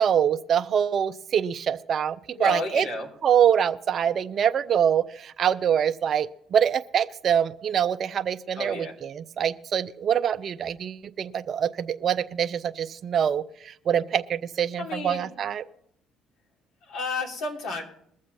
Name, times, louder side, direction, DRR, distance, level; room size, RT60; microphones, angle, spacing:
voice 1, 0.0-2.8 3.2-15.6, right 8 dB, 50° right, 10 dB, 0.5 m, -25 dB
voice 2, 2.3-3.1 8.5-8.9 14.8-15.3 16.9-17.8, left 2 dB, 75° left, 0 dB, 3.2 m, -31 dB
21.5 x 7.4 x 4.1 m, 0.71 s
cardioid pair, 90°, 0 cm